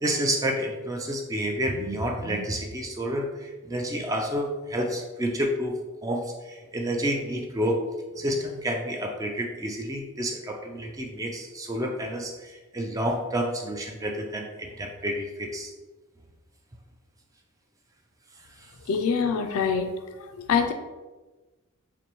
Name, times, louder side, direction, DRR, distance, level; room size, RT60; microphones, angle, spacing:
voice 1, 0.0-7.8 8.2-15.7, equal, 15° right, 3 dB, 0.3 m, -29 dB
voice 2, 18.9-19.9 20.2-20.7, left 6 dB, 75° left, 6 dB, 0.3 m, -25 dB
4.3 x 2.5 x 3.0 m, 1.2 s
head